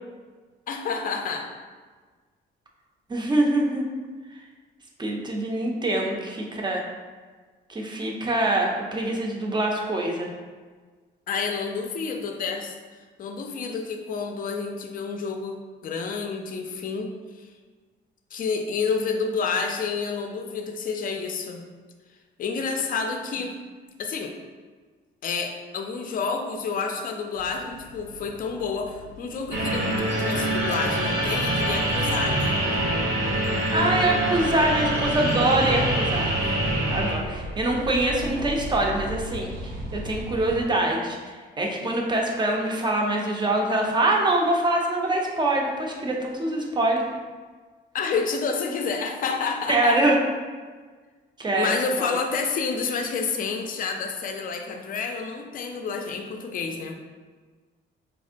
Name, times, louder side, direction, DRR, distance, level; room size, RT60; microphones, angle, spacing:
voice 1, 0.7-1.5 11.3-12.7 13.2-17.5 18.3-21.6 22.4-23.6 24.0-24.4 25.2-32.7 36.4-36.5 41.8-41.9 47.9-50.0 51.5-56.9, left 5 dB, 45° left, 4 dB, 0.4 m, -29 dB
voice 2, 3.1-3.9 5.0-6.8 7.7-10.3 33.7-36.3 36.9-39.5 39.9-41.2 41.6-47.0 49.7-50.2 51.4-52.2, right 1 dB, 20° right, 0 dB, 0.5 m, -24 dB
sound 1, 27.3-40.6, equal, 85° right, 0.5 m, -38 dB
sound 2, 29.5-37.1, right 1 dB, 55° right, 0.8 m, -25 dB
3.5 x 2.1 x 2.5 m, 1.5 s
cardioid pair, 90°, 20 cm